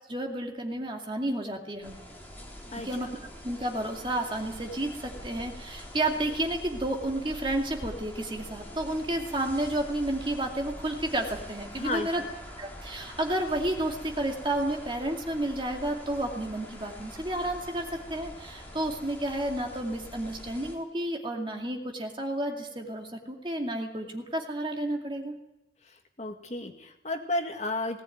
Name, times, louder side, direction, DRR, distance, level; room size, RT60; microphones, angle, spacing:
voice 1, 0.1-2.0 2.8-3.1 3.4-12.2 12.6-25.4, right 1 dB, 25° right, 2 dB, 2.4 m, -31 dB
sound 1, 1.8-20.8, equal, 10° left, 3.6 m, -44 dB
voice 2, 11.8-12.3 25.9-28.0, left 2 dB, 40° left, 4 dB, 1.9 m, -33 dB
19.0 x 17.5 x 9.3 m, 0.94 s
head